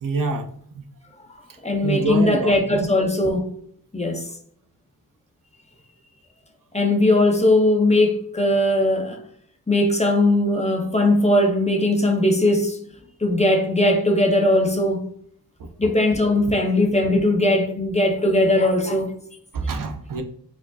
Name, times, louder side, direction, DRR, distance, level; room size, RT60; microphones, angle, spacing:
voice 1, 0.0-0.5 0.7-0.8 1.8-2.9 15.6-15.9 19.5-20.2, right 3 dB, 60° right, 0.5 m, -26 dB
voice 2, 1.6-3.4 3.9-4.3 6.7-9.2 9.7-12.8 13.2-15.1 15.8-19.1, left 1 dB, 20° left, 0.6 m, -19 dB
4.6 x 2.4 x 2.3 m
wide cardioid pair, 85°, 38 cm